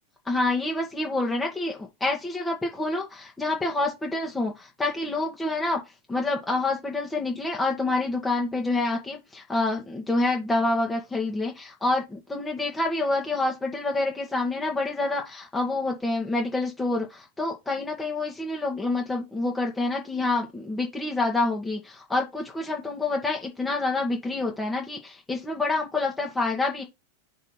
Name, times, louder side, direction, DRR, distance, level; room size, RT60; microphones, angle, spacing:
voice 1, 0.2-5.8 6.1-26.8, left 2 dB, 10° left, 1.6 m, -27 dB
5.4 x 4.2 x 5.5 m
figure-of-eight pair, 90°, 0 cm